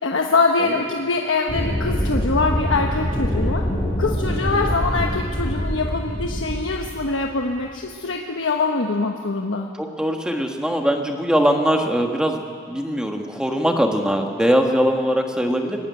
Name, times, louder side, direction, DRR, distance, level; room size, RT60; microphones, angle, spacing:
voice 1, 0.0-3.7 4.0-9.7, left 3 dB, 75° left, 2 dB, 1.2 m, -23 dB
sound 1, 1.5-7.8, equal, 25° left, 4.6 m, -24 dB
voice 2, 3.1-3.5 4.3-4.5 9.8-15.9, equal, 5° right, 3 dB, 1.5 m, -22 dB
20.0 x 15.0 x 9.4 m, 2.1 s
head